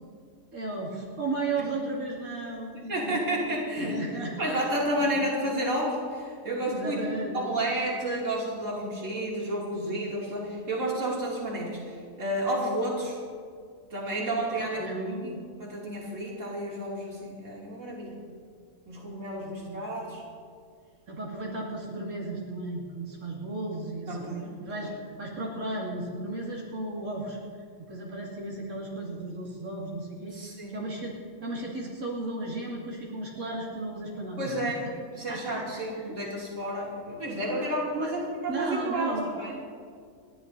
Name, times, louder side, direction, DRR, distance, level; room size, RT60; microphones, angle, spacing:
voice 1, 0.5-3.3 3.7-4.6 5.0-5.1 6.6-7.6 14.5-15.4 19.4-19.9 21.1-27.4 27.9-31.1 31.4-34.9 35.3-36.1 37.5-37.6 37.9-38.2 38.5-39.3, right 2 dB, 90° right, -5 dB, 3.0 m, -35 dB
voice 2, 2.9-4.0 4.4-7.0 7.3-13.2 13.9-14.9 15.2-15.3 15.6-18.3 18.9-20.2 24.1-24.9 30.3-30.8 34.4-34.9 35.2-39.5, right 1 dB, 65° right, -5 dB, 3.0 m, -31 dB
30.0 x 11.5 x 2.7 m, 2.1 s
omnidirectional pair, 1.5 m